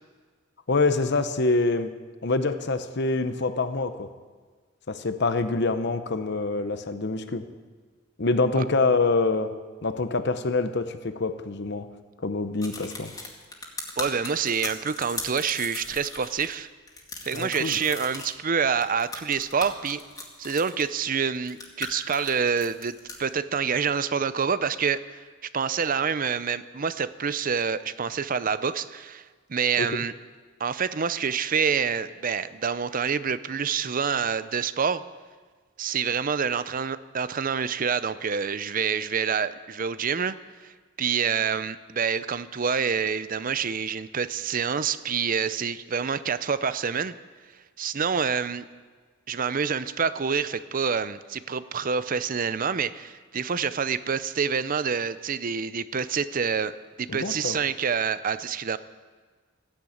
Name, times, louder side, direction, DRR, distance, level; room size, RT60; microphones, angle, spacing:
voice 1, 0.7-1.9 2.2-4.1 4.9-7.4 8.2-9.5 9.8-11.9 12.2-13.1 17.3-17.8 29.8-29.9 57.1-57.6, left 3 dB, 60° left, 9 dB, 0.9 m, -25 dB
sound 1, 12.6-16.6 16.9-18.3 18.8-20.8 21.3-23.2, left 3 dB, 20° left, 2.2 m, -37 dB
voice 2, 14.0-16.7 17.2-20.0 20.4-22.9 23.2-25.2 25.5-29.2 29.5-30.1 30.6-35.0 35.8-40.3 40.6-40.7 41.0-47.1 47.8-48.6 49.3-56.7 57.0-58.8, right 6 dB, 45° right, 14 dB, 0.6 m, -27 dB
15.0 x 10.0 x 8.7 m, 1.5 s
head